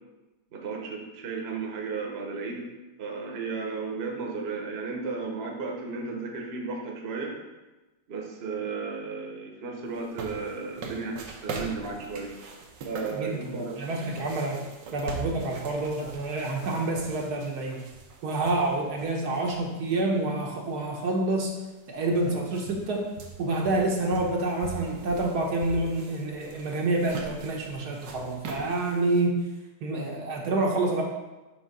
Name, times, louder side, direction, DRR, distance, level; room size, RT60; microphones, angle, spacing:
voice 1, 0.5-2.7 3.0-7.4 8.1-12.3 12.8-13.8, right 4 dB, 45° right, 0 dB, 1.0 m, -34 dB
sound 1, 9.9-20.0 20.4-20.5 21.4-21.5 21.8-29.2, right 4 dB, 90° right, 1.5 m, -42 dB
voice 2, 13.1-14.6 14.9-17.9 18.2-21.5 21.9-23.1 23.4-29.5 29.8-31.0, right 2 dB, 70° right, -1 dB, 1.3 m, -28 dB
6.3 x 3.5 x 5.2 m, 1.1 s
omnidirectional pair, 1.9 m